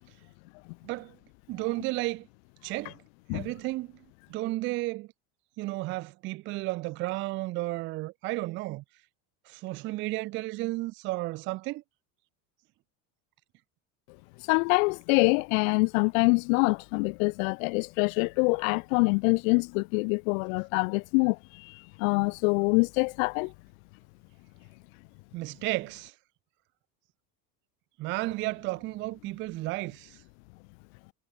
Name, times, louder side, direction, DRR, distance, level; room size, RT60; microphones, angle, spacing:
voice 1, 0.8-1.2 1.5-2.3 2.6-3.0 3.3-3.9 4.3-5.1 5.6-8.8 9.5-11.8 25.3-26.1 28.0-30.2, right 20 dB, 30° right, 0.4 m, -33 dB
voice 2, 14.5-23.5, left 32 dB, 75° left, 1.2 m, -25 dB
cardioid pair, 180°, 41 cm